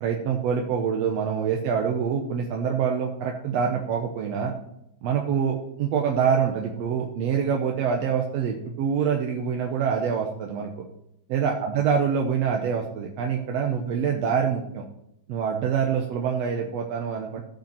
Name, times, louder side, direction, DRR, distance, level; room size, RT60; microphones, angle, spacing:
voice 1, 0.0-4.5 5.0-10.9 11.3-14.8 15.3-17.4, right 7 dB, 70° right, 1 dB, 1.7 m, -25 dB
16.0 x 5.8 x 4.3 m, 0.80 s
omnidirectional pair, 3.7 m